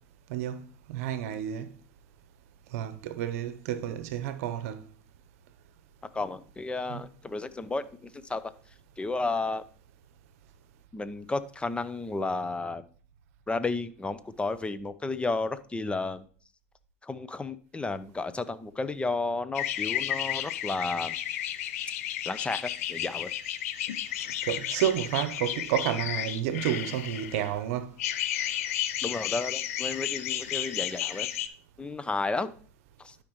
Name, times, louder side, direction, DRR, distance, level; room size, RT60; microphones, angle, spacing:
voice 1, 0.3-0.6 0.9-1.7 2.7-4.8 6.9-7.0 24.4-27.9, right 11 dB, 70° right, 0.8 m, -30 dB
voice 2, 6.1-8.4 9.0-9.6 10.9-12.8 13.5-16.3 17.0-21.2 22.3-23.3 29.0-31.3 31.8-32.5 33.0-33.2, left 3 dB, 15° left, 0.7 m, -32 dB
sound 1, 19.5-27.5 28.0-31.5, left 11 dB, 75° left, 0.6 m, -32 dB
12.0 x 5.0 x 3.1 m
hypercardioid pair, 90°, 8 cm